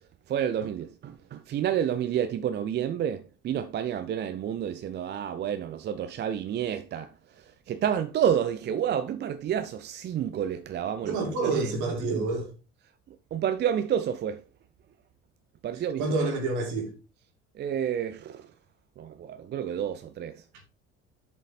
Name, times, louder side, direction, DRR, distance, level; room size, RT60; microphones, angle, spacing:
voice 1, 0.3-7.1 7.4-11.2 11.6-11.7 12.1-12.2 13.3-14.4 15.6-16.0 17.6-18.5 19.0-20.4, right 9 dB, 30° right, 0.5 m, -29 dB
voice 2, 11.0-12.5 15.7-16.9, right 3 dB, 55° right, 2.6 m, -28 dB
7.1 x 5.1 x 4.1 m
figure-of-eight pair, 60°, 35 cm